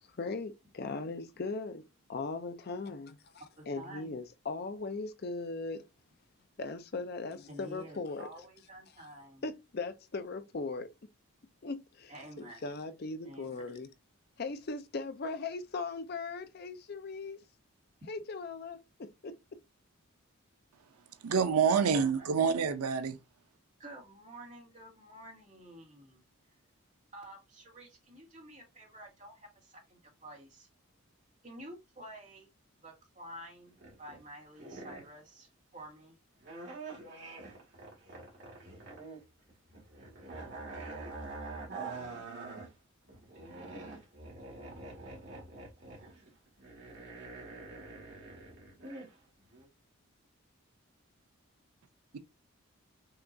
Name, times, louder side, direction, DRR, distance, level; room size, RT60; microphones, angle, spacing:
voice 1, 0.0-3.3 3.7-5.9 6.6-8.3 9.4-10.9 11.6-12.1 12.6-13.9 14.4-17.4 18.1-19.6, left 3 dB, 45° left, 0.5 m, -39 dB
voice 2, 3.6-4.2 7.5-9.4 12.1-12.8 13.2-13.6 21.6-21.9 22.2-22.3 23.8-26.2 27.1-30.7 31.4-32.5 32.8-36.1, right 1 dB, 35° right, 2.0 m, -50 dB
voice 3, 21.2-23.2 52.1-52.2, right 6 dB, 90° right, 0.5 m, -27 dB
sound 1, 33.7-34.3 34.6-35.2 36.4-39.2 39.5-42.7 43.1-49.1 49.5-49.7, right 3 dB, 50° right, 2.1 m, -45 dB
5.8 x 2.9 x 2.6 m
head